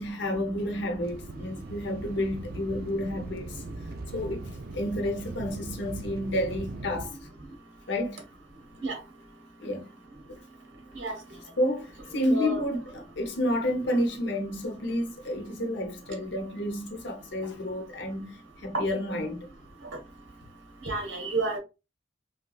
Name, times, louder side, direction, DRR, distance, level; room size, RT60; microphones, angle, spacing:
voice 1, 0.0-3.6 4.1-4.5 4.7-7.1 7.9-8.2 9.6-9.9 10.3-10.4 11.6-19.5, left 1 dB, 65° left, 0.8 m, -30 dB
sound 1, 1.0-7.1, right 2 dB, 50° right, 0.5 m, -40 dB
voice 2, 20.8-21.6, right 2 dB, 75° right, 1.1 m, -30 dB
3.2 x 3.0 x 2.3 m
head